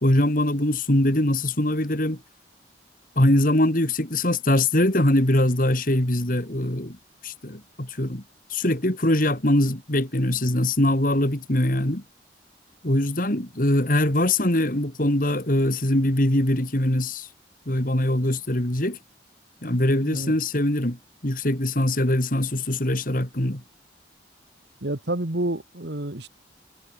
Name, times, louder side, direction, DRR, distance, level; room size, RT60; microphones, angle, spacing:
voice 1, 0.0-2.2 3.2-7.0 7.2-8.2 8.5-12.0 12.8-17.3 17.7-19.0 19.6-23.6, left 1 dB, 45° left, 2.9 m, -22 dB
voice 2, 19.7-20.3 24.8-26.3, right 1 dB, 65° right, 1.9 m, -29 dB
head